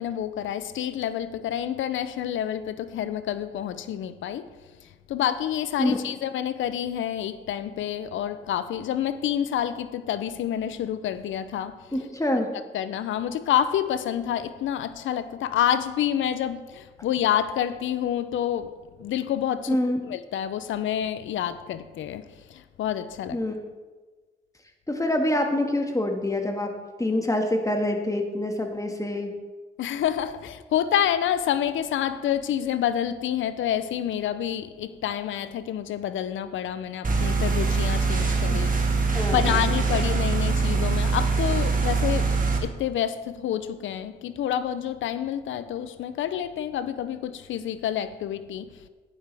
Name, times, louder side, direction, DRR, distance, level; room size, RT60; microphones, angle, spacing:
voice 1, 0.0-4.5 5.1-11.8 12.7-18.7 19.0-19.8 20.0-23.4 29.8-39.1 39.3-42.3 42.6-48.7, left 10 dB, 85° left, 13 dB, 0.5 m, -28 dB
voice 2, 11.9-12.5 19.7-20.0 23.3-23.6 24.9-26.7 27.0-29.3 38.5-38.7 39.1-39.7, left 1 dB, 15° left, 3 dB, 1.7 m, -26 dB
sound 1, 37.0-42.6, right 4 dB, 45° right, 1.8 m, -23 dB
11.5 x 9.0 x 3.4 m, 1.3 s
supercardioid pair, 50°, 20 cm